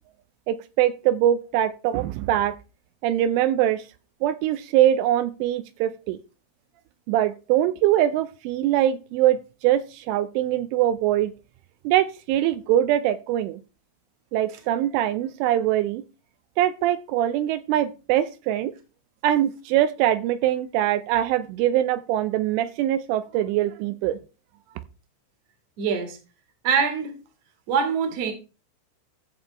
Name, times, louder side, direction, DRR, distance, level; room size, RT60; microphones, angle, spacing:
voice 1, 0.5-2.5 3.0-3.8 4.2-6.2 7.1-11.3 11.8-13.6 14.3-16.0 16.6-18.7 19.2-24.2, right 12 dB, 85° right, 12 dB, 3.1 m, -23 dB
voice 2, 25.8-26.2 26.6-27.2 27.7-28.3, right 6 dB, 45° right, 5 dB, 2.3 m, -24 dB
14.0 x 7.0 x 3.4 m, 0.31 s
omnidirectional pair, 5.6 m